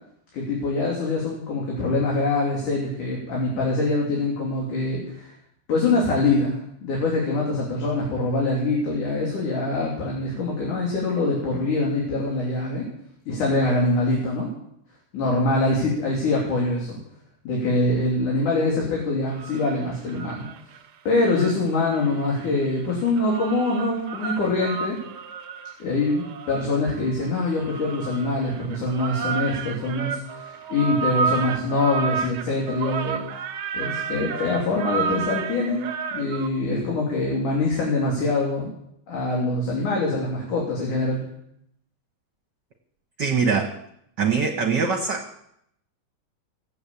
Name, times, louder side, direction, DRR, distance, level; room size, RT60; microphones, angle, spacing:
voice 1, 0.3-5.3 5.7-12.8 13.3-14.5 15.1-17.0 17.4-20.5 21.1-25.0 25.8-33.2 33.7-38.7 39.1-41.2, left 2 dB, 90° left, -3 dB, 4.6 m, -24 dB
sound 1, 19.3-20.8 21.2-36.5, right 6 dB, 70° right, 1.3 m, -31 dB
voice 2, 43.2-43.7 44.2-45.3, right 5 dB, 45° right, 3 dB, 1.6 m, -22 dB
18.0 x 7.9 x 8.5 m, 0.75 s
omnidirectional pair, 3.4 m